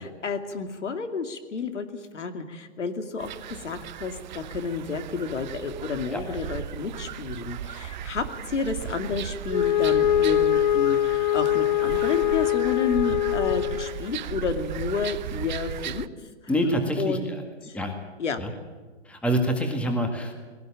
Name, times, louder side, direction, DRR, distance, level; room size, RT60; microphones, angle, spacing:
voice 1, 0.0-16.1 17.0-17.4 17.6-17.8 18.2-18.4, left 5 dB, 85° left, 7 dB, 2.7 m, -31 dB
sound 1, 3.2-16.1, right 10 dB, 40° right, 0.8 m, -36 dB
Wind instrument woodwind instrument, 9.5-14.1, left 12 dB, 45° left, 0.9 m, -23 dB
voice 2, 16.5-17.4 17.7-17.9 18.4-18.5 19.1-20.4, equal, 5° left, 4 dB, 2.0 m, -26 dB
19.5 x 18.0 x 9.0 m, 1.4 s
hypercardioid pair, 150°, 35 cm